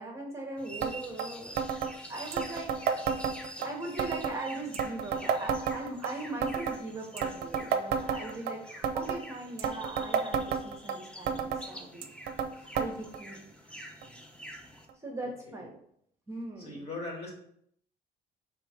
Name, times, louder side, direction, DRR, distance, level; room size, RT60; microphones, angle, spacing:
voice 1, 0.0-2.7 3.6-12.1 12.7-13.4 13.7-13.8 15.0-15.8 16.3-16.8, right 2 dB, 15° right, -1 dB, 0.9 m, -40 dB
sound 1, 0.6-14.8, equal, 5° left, 0.6 m, -47 dB
sound 2, 0.8-0.9 1.2-1.3 1.6-1.9 2.3-3.7 4.0-4.4 4.7-6.1 6.4-6.8 7.2-8.5 8.8-9.2 9.6-11.0 11.3-11.6 12.0-12.5 12.8-12.9 13.1-13.2 14.0-14.1 14.9-15.0, right 7 dB, 70° right, 0.5 m, -30 dB
voice 2, 16.6-17.3, left 2 dB, 35° left, -1 dB, 1.7 m, -40 dB
3.5 x 3.0 x 4.8 m, 0.70 s
cardioid pair, 110°, 17 cm